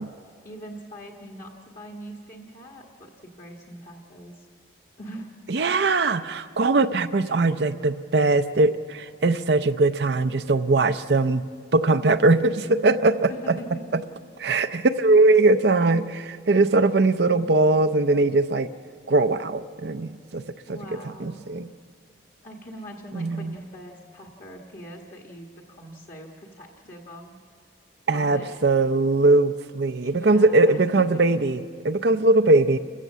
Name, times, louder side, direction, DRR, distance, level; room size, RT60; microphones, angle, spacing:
voice 1, 0.4-4.5 5.0-5.3 5.9-6.1 13.3-13.8 20.7-21.4 22.4-27.4 28.1-28.6 30.0-31.0, equal, 40° left, -1 dB, 1.5 m, -42 dB
voice 2, 5.5-11.4 11.7-13.3 14.4-18.7 19.1-20.4 20.7-20.8 21.2-21.7 23.1-23.5 28.1-32.8, right 2 dB, 55° right, 9 dB, 0.5 m, -20 dB
29.0 x 15.0 x 7.5 m, 2.1 s
head